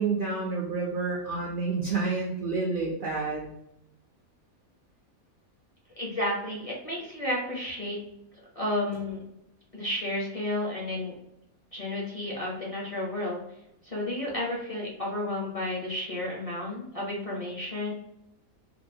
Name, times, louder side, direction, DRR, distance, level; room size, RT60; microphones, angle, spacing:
voice 1, 0.0-3.5, right 4 dB, 65° right, -2 dB, 0.5 m, -29 dB
voice 2, 5.9-8.0 8.5-9.2 9.7-11.1 11.7-13.4 13.8-17.9, left 1 dB, 35° left, -4 dB, 0.6 m, -32 dB
3.8 x 2.1 x 2.7 m, 0.83 s
omnidirectional pair, 1.5 m